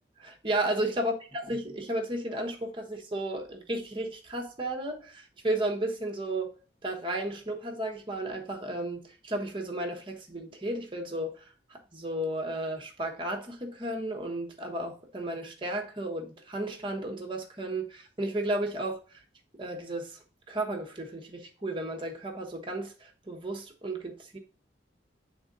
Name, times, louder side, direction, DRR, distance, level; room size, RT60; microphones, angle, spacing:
voice 1, 0.2-6.6 6.8-11.4 11.7-19.0 19.6-20.2 20.5-24.4, right 1 dB, 30° right, 1.1 m, -33 dB
7.8 x 3.7 x 3.9 m
head